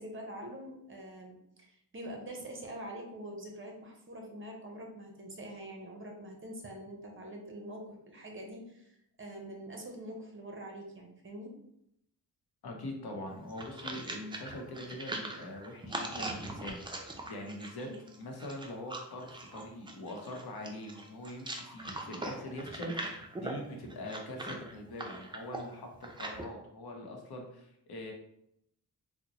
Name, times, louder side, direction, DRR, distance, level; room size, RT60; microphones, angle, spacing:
voice 1, 0.0-8.9 9.2-11.5 17.8-18.0, right 1 dB, 35° right, 1 dB, 0.8 m, -45 dB
voice 2, 12.6-17.9 18.2-28.1, left 1 dB, 75° left, 2 dB, 0.8 m, -43 dB
sound 1, 13.3-26.5, right 2 dB, 15° right, 0.4 m, -41 dB
3.8 x 2.1 x 2.9 m, 0.77 s
cardioid pair, 85°, 38 cm